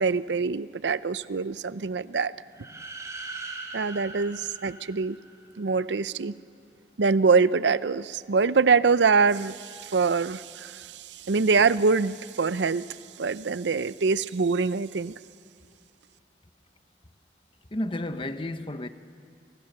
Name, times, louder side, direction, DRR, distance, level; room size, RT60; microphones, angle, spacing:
voice 1, 0.0-2.3 3.7-5.2 5.6-6.3 7.0-15.1, right 4 dB, 80° right, 0.6 m, -24 dB
sound 1, 2.5-5.5, right 3 dB, 20° right, 3.4 m, -40 dB
voice 2, 17.7-18.9, left 1 dB, 30° left, 1.0 m, -31 dB
30.0 x 24.5 x 6.8 m
head